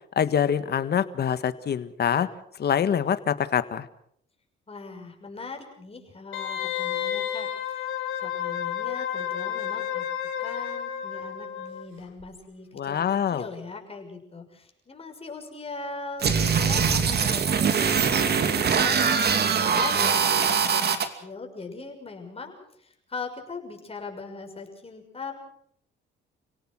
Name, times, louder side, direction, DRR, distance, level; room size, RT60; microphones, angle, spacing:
voice 1, 0.1-2.3 2.6-3.9 12.7-13.5, left 8 dB, 55° left, 12 dB, 1.6 m, -25 dB
voice 2, 4.7-7.9 8.2-10.1 10.4-13.0 13.3-18.0 18.6-25.3, left 4 dB, 30° left, 3 dB, 6.4 m, -40 dB
Wind instrument woodwind instrument, 6.3-11.9 12.2-12.3, left 9 dB, 90° left, 3.3 m, -31 dB
sound 1, 16.2-21.1, right 6 dB, 55° right, 2.6 m, -22 dB
30.0 x 17.5 x 6.3 m, 0.67 s
cardioid pair, 90°, 20 cm